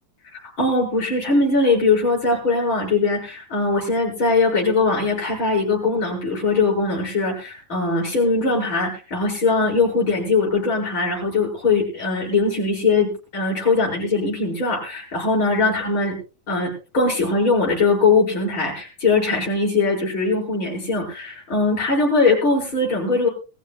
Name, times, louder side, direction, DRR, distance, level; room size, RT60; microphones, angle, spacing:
voice 1, 0.3-16.2 16.5-23.3, left 3 dB, 40° left, -3 dB, 8.0 m, -21 dB
24.0 x 15.0 x 2.4 m, 0.34 s
omnidirectional pair, 3.4 m